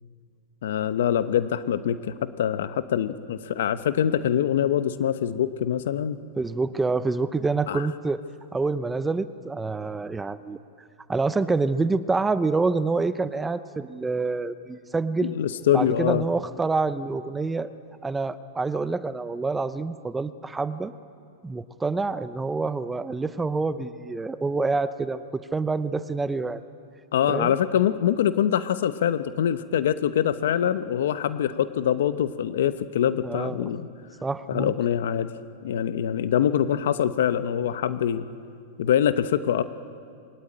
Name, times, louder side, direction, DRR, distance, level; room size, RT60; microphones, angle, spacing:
voice 1, 0.6-6.2 7.7-7.8 15.2-16.2 27.1-33.9 34.5-35.3 35.6-38.2 38.8-39.6, left 10 dB, 75° left, 12 dB, 0.9 m, -24 dB
voice 2, 6.4-8.2 8.5-10.6 11.1-15.3 15.7-17.7 18.0-20.9 21.4-26.6 27.3-27.5 33.2-33.7 34.2-34.7, right 3 dB, 10° right, 13 dB, 0.6 m, -27 dB
22.5 x 19.5 x 8.7 m, 2.3 s
hypercardioid pair, 135°, 0 cm